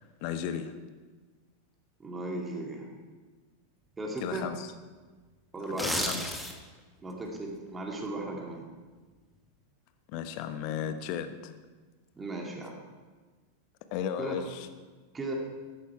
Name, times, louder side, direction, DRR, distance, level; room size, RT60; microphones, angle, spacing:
voice 1, 0.2-0.7 4.2-4.7 5.6-6.4 10.1-11.5 13.9-14.7, left 8 dB, 45° left, 10 dB, 1.1 m, -35 dB
voice 2, 2.0-2.9 4.0-4.5 5.5-5.9 7.0-8.7 12.2-12.7 14.2-14.4 15.1-15.3, right 2 dB, 15° right, -1 dB, 2.6 m, -36 dB
sound 1, 5.6-6.8 7.2-7.4, equal, ahead, 1.7 m, -32 dB
14.0 x 13.5 x 4.6 m, 1.3 s
figure-of-eight pair, 90°, 0 cm